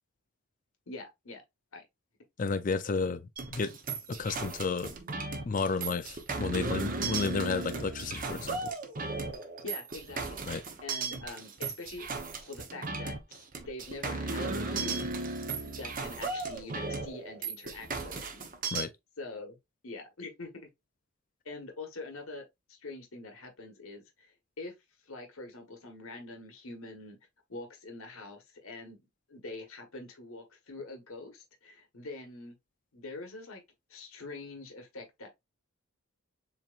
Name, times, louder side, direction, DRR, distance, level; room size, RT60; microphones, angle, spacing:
voice 1, 0.9-1.4 1.7-1.8 9.6-12.1 12.4-15.3 15.6-18.5 19.2-19.6 19.8-20.7 21.4-24.3 24.6-24.7 25.1-27.2 27.5-29.0 29.3-32.5 32.9-33.6 33.9-35.3, left 3 dB, 80° left, 1.3 m, -44 dB
voice 2, 2.4-3.2 3.5-3.8 4.1-4.9 5.4-8.7 10.5-10.6 18.7-18.9, left 4 dB, 40° left, 0.4 m, -32 dB
sound 1, 3.4-18.8, right 3 dB, 40° right, 0.9 m, -36 dB
7.2 x 3.0 x 2.5 m
head